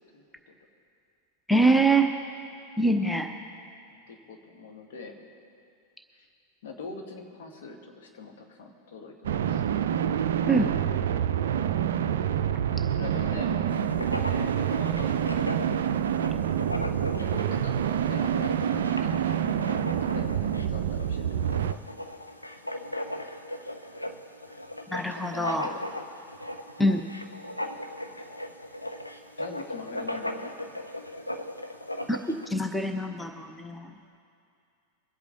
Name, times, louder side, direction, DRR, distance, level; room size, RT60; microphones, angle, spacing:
voice 1, 0.1-0.6 4.1-5.2 6.1-6.3 6.6-9.6 12.7-13.7 14.0-15.5 17.2-19.5 20.0-21.8 24.9-25.8 29.4-30.6, left 4 dB, 55° left, 2 dB, 1.7 m, -43 dB
voice 2, 1.5-2.1 2.8-3.3 10.5-10.7 24.9-25.7 26.8-27.0 32.1-32.2 32.5-33.9, right 2 dB, 5° left, 5 dB, 0.8 m, -24 dB
sound 1, 9.2-21.7, right 9 dB, 60° right, 0.4 m, -27 dB
Writing, 13.7-32.5, left 1 dB, 85° left, 0.7 m, -38 dB
23.5 x 8.3 x 3.9 m, 2.5 s
figure-of-eight pair, 90°, 0 cm